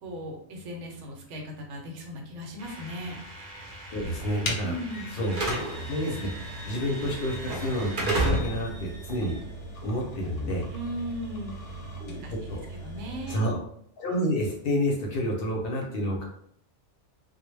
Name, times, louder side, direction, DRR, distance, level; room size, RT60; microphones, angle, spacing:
voice 1, 0.0-3.2 4.6-5.2 10.7-11.6 12.1-13.4, equal, 80° right, 1 dB, 1.0 m, -37 dB
Slam / Alarm, 2.6-10.7, right 2 dB, 55° right, 0.7 m, -34 dB
voice 2, 3.9-4.8 5.1-9.4 9.8-10.7 12.0-12.7 13.3-13.6 14.0-16.2, equal, 60° left, 0 dB, 0.7 m, -29 dB
sound 1, 4.4-13.6, right 1 dB, 90° left, 0.9 m, -40 dB
Wind instrument woodwind instrument, 4.9-9.5, left 1 dB, 5° left, 0.8 m, -47 dB
2.1 x 2.1 x 3.1 m, 0.66 s
omnidirectional pair, 1.2 m